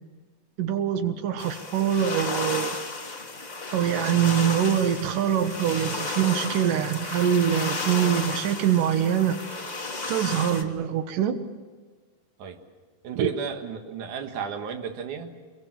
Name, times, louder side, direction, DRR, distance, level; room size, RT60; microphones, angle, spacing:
voice 1, 0.6-2.8 3.7-9.4 10.1-11.4 13.1-13.3, right 9 dB, 85° right, 9 dB, 2.9 m, -24 dB
sound 1, 1.4-10.6, left 3 dB, 25° left, 0.9 m, -33 dB
voice 2, 13.0-15.4, right 7 dB, 70° right, 5 dB, 3.1 m, -34 dB
26.0 x 23.0 x 7.6 m, 1.4 s
omnidirectional pair, 3.7 m